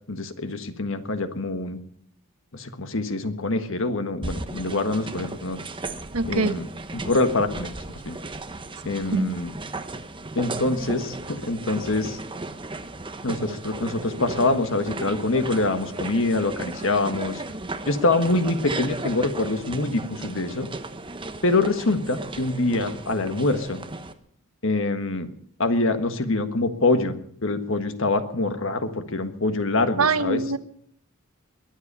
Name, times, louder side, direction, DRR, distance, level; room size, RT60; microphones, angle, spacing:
voice 1, 0.1-1.8 2.5-5.6 6.3-6.6 6.9-7.7 8.0-8.2 8.8-9.5 10.3-12.2 13.2-17.4 17.8-20.7 21.4-23.8 24.6-25.3 25.6-27.2 27.4-30.4, left 2 dB, 60° left, 9 dB, 1.6 m, -25 dB
sound 1, 4.2-24.1, right 2 dB, 25° right, 1.0 m, -35 dB
voice 2, 6.1-6.6 9.1-9.3 30.0-30.6, right 4 dB, 85° right, 12 dB, 1.1 m, -23 dB
22.5 x 8.3 x 6.8 m, 0.66 s
head